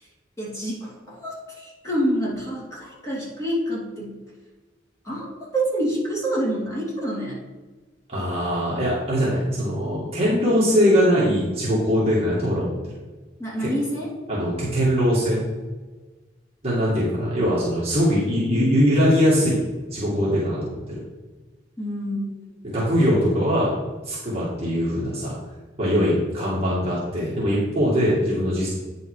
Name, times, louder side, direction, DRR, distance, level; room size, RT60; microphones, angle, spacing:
voice 1, 0.4-4.1 5.0-5.3 5.5-7.4 13.4-14.1 21.8-22.3, right 1 dB, 15° left, -5 dB, 2.6 m, -27 dB
voice 2, 8.1-12.8 13.6-13.7 14.3-15.4 16.6-19.6 19.9-21.0 22.6-23.7 24.1-25.3 25.8-28.7, equal, 30° right, -7 dB, 2.2 m, -21 dB
9.2 x 5.5 x 4.9 m, 1.3 s
head